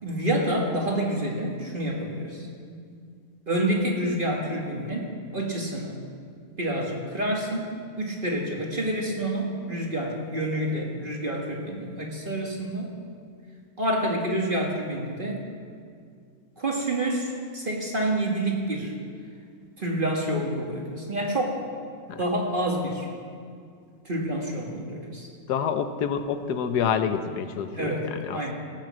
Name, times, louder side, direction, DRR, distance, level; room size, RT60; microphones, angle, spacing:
voice 1, 0.0-3.0 3.5-5.1 5.3-6.0 6.6-12.9 13.8-15.4 16.6-18.9 19.8-21.6 22.2-23.1 24.0-25.3 27.7-28.1 28.3-28.5, right 1 dB, 30° right, 0 dB, 1.5 m, -28 dB
voice 2, 25.5-28.5, left 7 dB, 70° left, 9 dB, 1.2 m, -28 dB
17.5 x 6.3 x 7.4 m, 2.2 s
omnidirectional pair, 1.9 m